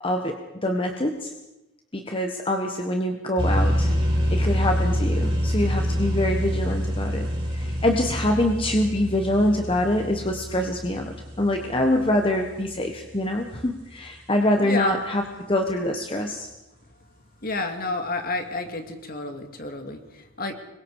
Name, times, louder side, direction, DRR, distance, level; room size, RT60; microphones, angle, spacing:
voice 1, 0.0-1.3 1.9-3.9 4.3-15.2 15.5-16.5, left 1 dB, 25° left, 4 dB, 1.4 m, -25 dB
sound 1, 3.4-12.9, equal, 25° right, 6.1 m, -26 dB
voice 2, 14.6-15.0 17.4-20.5, left 3 dB, 45° left, 5 dB, 2.4 m, -30 dB
25.5 x 22.5 x 4.9 m, 0.99 s
head